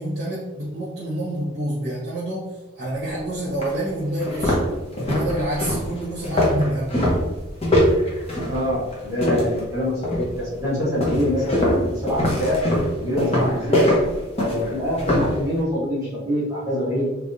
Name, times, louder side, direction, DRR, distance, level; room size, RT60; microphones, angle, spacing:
voice 1, 0.0-2.5 2.7-4.6 5.0-7.0, right 1 dB, 50° right, -7 dB, 1.0 m, -27 dB
sound 1, 3.0-3.1 3.6-3.7 4.2-9.7 10.0-10.4 11.0-15.4, left 1 dB, 30° left, 0.8 m, -22 dB
voice 2, 8.5-12.6 13.0-13.9 14.4-17.1, equal, 15° right, -9 dB, 0.9 m, -25 dB
3.4 x 3.2 x 2.6 m, 1.1 s
head